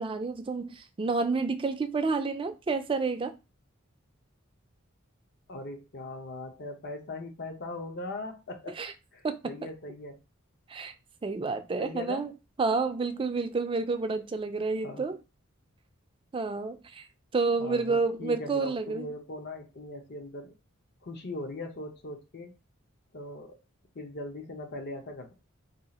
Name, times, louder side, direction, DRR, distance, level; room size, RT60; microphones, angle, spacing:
voice 1, 0.0-3.4 8.8-8.9 9.2-9.5 10.7-10.9 11.2-12.3 12.6-15.2 16.3-17.1 17.3-19.1, right 4 dB, 25° right, 0.3 m, -29 dB
voice 2, 5.5-8.8 9.1-10.2 11.8-12.3 14.8-15.1 17.6-20.6 21.0-22.5 23.1-23.6 23.9-25.3, left 2 dB, 55° left, 0.7 m, -40 dB
2.7 x 2.3 x 4.1 m
head